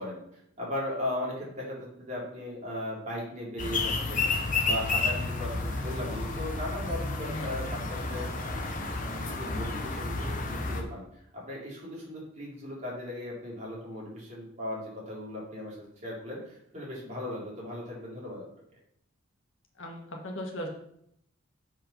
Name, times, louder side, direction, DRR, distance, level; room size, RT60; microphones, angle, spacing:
voice 1, 0.0-4.3 4.6-8.3 9.1-18.4 18.7-18.8, left 1 dB, 35° right, -5 dB, 3.5 m, -37 dB
sound 1, 3.6-10.8, left 3 dB, 40° left, 1.1 m, -31 dB
voice 2, 7.3-7.6 19.8-20.7, equal, 75° left, 1 dB, 1.8 m, -37 dB
7.3 x 5.5 x 5.8 m, 0.73 s
head